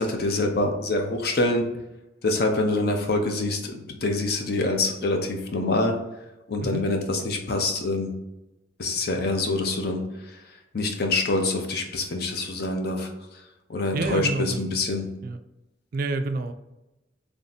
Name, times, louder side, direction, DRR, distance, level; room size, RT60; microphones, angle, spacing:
voice 1, 0.0-1.6 2.2-3.7 4.0-5.9 6.5-8.1 8.8-10.0 10.7-13.1 13.7-15.0, left 2 dB, 55° left, 3 dB, 0.6 m, -25 dB
voice 2, 13.9-14.6 15.2-15.4 15.9-16.5, right 3 dB, 50° right, 9 dB, 0.3 m, -28 dB
3.4 x 2.7 x 4.0 m, 0.94 s
head